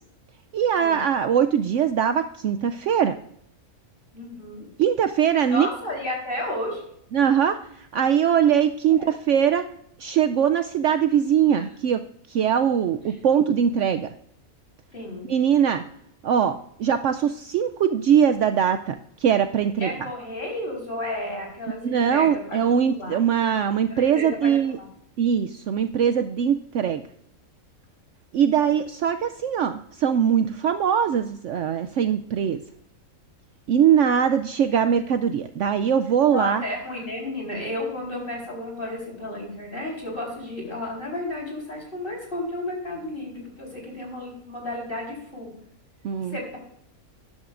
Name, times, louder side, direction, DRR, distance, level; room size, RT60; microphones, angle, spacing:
voice 1, 0.5-3.1 4.8-5.7 7.1-9.6 10.0-12.0 12.3-14.1 15.3-15.8 16.2-18.9 19.2-19.9 21.8-24.8 25.2-27.0 28.3-32.6 33.7-36.6 46.0-46.4, right 8 dB, 65° right, 9 dB, 0.8 m, -21 dB
voice 2, 4.1-4.7 5.5-6.8 8.9-9.1 11.6-11.7 13.1-13.2 14.9-15.3 19.8-22.6 22.9-23.2 23.9-24.9 36.3-45.5 46.3-46.6, left 1 dB, 35° left, -1 dB, 4.2 m, -32 dB
13.0 x 11.0 x 2.5 m, 0.70 s
omnidirectional pair, 1.5 m